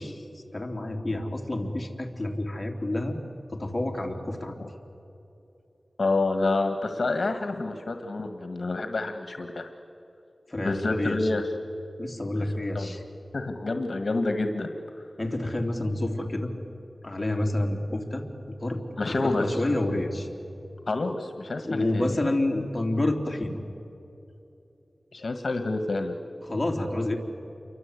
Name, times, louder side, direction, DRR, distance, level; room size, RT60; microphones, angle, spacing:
voice 1, 0.0-3.2 3.5-4.6 10.5-11.3 12.0-13.0 15.2-16.5 17.0-18.2 18.6-18.8 19.1-20.3 21.6-23.6 26.4-27.2, left 1 dB, 30° left, 1 dB, 3.4 m, -29 dB
voice 2, 6.0-9.7 10.6-11.4 12.4-12.9 13.3-14.7 19.0-19.6 20.9-22.0 25.1-26.2, left 2 dB, 70° left, 6 dB, 1.6 m, -28 dB
29.0 x 23.5 x 8.3 m, 2.9 s
wide cardioid pair, 70°, 0 cm